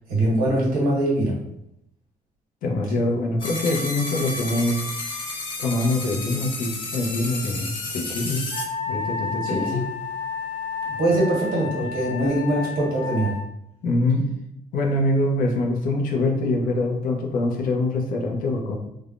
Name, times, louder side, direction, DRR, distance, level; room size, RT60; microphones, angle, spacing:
voice 1, 0.1-1.3 9.4-9.7 11.0-13.3, right 1 dB, 90° right, -3 dB, 1.2 m, -22 dB
voice 2, 2.6-4.8 5.6-8.4 8.9-9.8 13.8-14.3 14.7-18.8, left 2 dB, 75° left, 1 dB, 0.6 m, -24 dB
sound 1, 3.4-8.6, left 2 dB, 35° left, 0.6 m, -32 dB
Wind instrument woodwind instrument, 8.5-13.4, left 4 dB, 15° left, 1.0 m, -31 dB
3.4 x 2.2 x 2.4 m, 0.77 s
cardioid pair, 165°, 15 cm